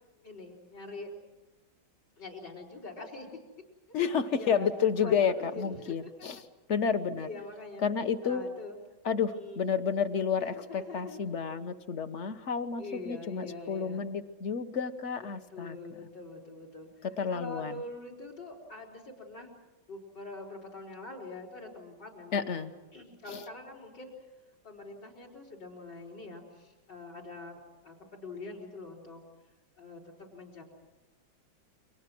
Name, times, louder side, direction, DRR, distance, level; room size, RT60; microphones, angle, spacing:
voice 1, 0.2-1.1 2.2-3.3 4.3-4.7 5.0-5.9 7.1-8.8 9.3-9.7 10.4-11.2 12.8-14.1 15.5-19.5 19.9-24.1 24.6-29.2 29.8-30.6, left 2 dB, 60° left, 3 dB, 5.0 m, -44 dB
voice 2, 3.9-6.4 6.7-7.3 7.8-8.4 9.0-15.8 17.2-17.8 22.3-22.7 23.3-23.4, left 6 dB, 45° left, 10 dB, 1.2 m, -30 dB
29.5 x 24.0 x 6.1 m, 1.1 s
omnidirectional pair, 2.2 m